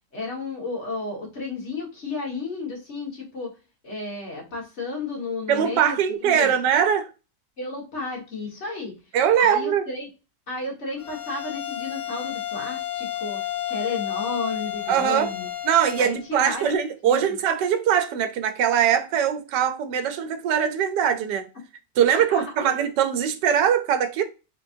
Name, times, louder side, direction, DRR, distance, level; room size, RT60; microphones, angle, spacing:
voice 1, 0.1-3.5 3.8-6.5 7.6-8.9 9.4-10.1 10.5-13.4 13.7-15.5 16.0-16.8 17.0-17.2 22.1-22.7, left 3 dB, 40° left, 2.0 m, -32 dB
voice 2, 5.5-7.1 9.1-9.8 14.9-15.3 15.6-21.5 22.0-24.2, right 9 dB, 85° right, 1.3 m, -22 dB
Bowed string instrument, 11.0-16.2, left 12 dB, 70° left, 2.1 m, -31 dB
4.5 x 3.8 x 2.6 m
omnidirectional pair, 1.8 m